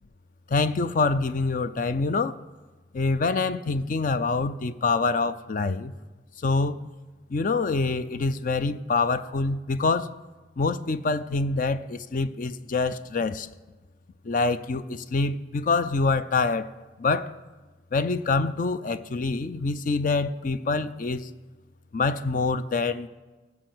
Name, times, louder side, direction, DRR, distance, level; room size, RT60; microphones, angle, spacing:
voice 1, 0.5-2.4 2.9-5.9 6.4-6.9 7.3-10.1 10.6-13.5 14.2-16.7 17.0-17.3 17.9-21.3 21.9-23.1, left 3 dB, 45° left, 0.4 m, -25 dB
14.5 x 5.4 x 7.9 m
head